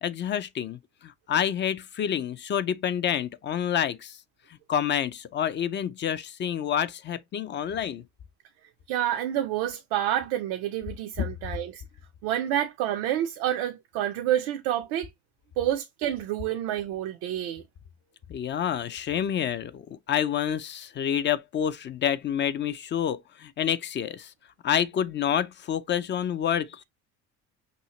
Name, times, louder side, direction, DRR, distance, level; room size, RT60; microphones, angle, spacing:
voice 1, 0.0-4.2 4.7-8.0 18.3-24.3 24.6-26.8, left 9 dB, 35° left, 0.5 m, -28 dB
voice 2, 8.9-11.8 12.2-15.1 15.6-17.6, right 11 dB, 90° right, 0.7 m, -28 dB
5.5 x 3.0 x 2.9 m
cardioid pair, 120°, 32 cm